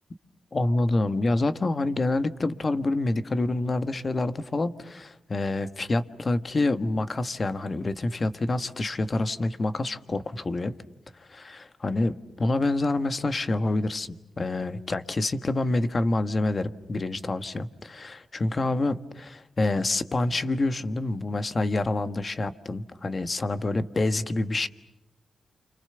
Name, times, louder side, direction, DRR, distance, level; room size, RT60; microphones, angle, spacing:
voice 1, 0.5-10.7 11.2-24.7, left 2 dB, 45° left, 11 dB, 1.4 m, -27 dB
29.0 x 26.5 x 6.9 m, 0.92 s
supercardioid pair, 45°, 0 cm